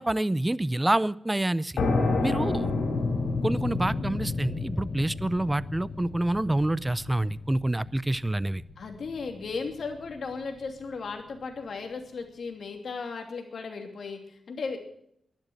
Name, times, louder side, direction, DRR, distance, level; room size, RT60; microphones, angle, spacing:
voice 1, 0.0-1.7 2.2-2.7 3.4-8.6, right 1 dB, 15° right, 19 dB, 0.5 m, -27 dB
sound 1, 1.8-9.2, left 3 dB, 85° left, 4.1 m, -30 dB
voice 2, 8.8-14.8, left 4 dB, 70° left, 4 dB, 2.8 m, -36 dB
11.5 x 11.0 x 8.9 m, 0.72 s
cardioid pair, 85°, 0 cm